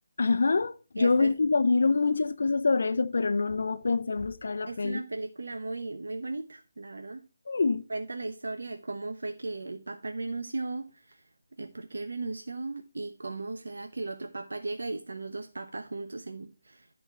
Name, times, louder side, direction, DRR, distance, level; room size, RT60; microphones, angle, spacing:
voice 1, 0.2-5.0 7.5-7.8, left 4 dB, 65° left, 0.5 m, -25 dB
voice 2, 1.0-1.3 4.7-7.2 7.9-16.9, right 3 dB, 80° right, 0.9 m, -37 dB
12.5 x 4.4 x 4.4 m
figure-of-eight pair, 165°, 0 cm